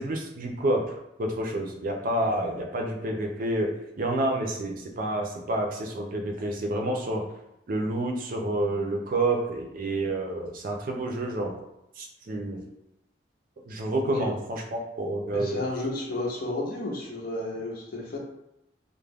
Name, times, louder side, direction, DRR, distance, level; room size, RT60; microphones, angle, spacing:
voice 1, 0.0-3.7 4.0-7.3 7.7-11.5 12.0-12.6 13.6-15.7, right 1 dB, 50° right, 1 dB, 0.4 m, -29 dB
voice 2, 15.3-18.2, left 2 dB, 55° left, -2 dB, 0.6 m, -32 dB
2.3 x 2.1 x 3.3 m, 0.84 s
head